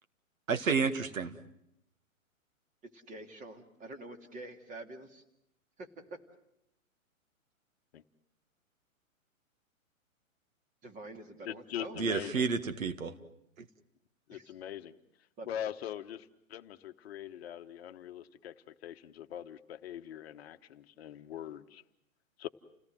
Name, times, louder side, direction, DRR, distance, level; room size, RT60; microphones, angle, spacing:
voice 1, 0.5-1.4 12.0-13.1, right 5 dB, 70° right, 9 dB, 1.9 m, -30 dB
voice 2, 2.9-5.2 5.8-5.9 10.8-12.0 12.3-12.4 14.3-14.6 15.4-15.7, right 2 dB, 20° right, 5 dB, 2.4 m, -47 dB
voice 3, 11.5-12.5 14.3-14.9 15.5-18.5 18.8-21.8 22.4-22.5, left 10 dB, 50° left, 9 dB, 1.1 m, -42 dB
29.5 x 18.0 x 7.7 m, 0.81 s
hypercardioid pair, 125°, 41 cm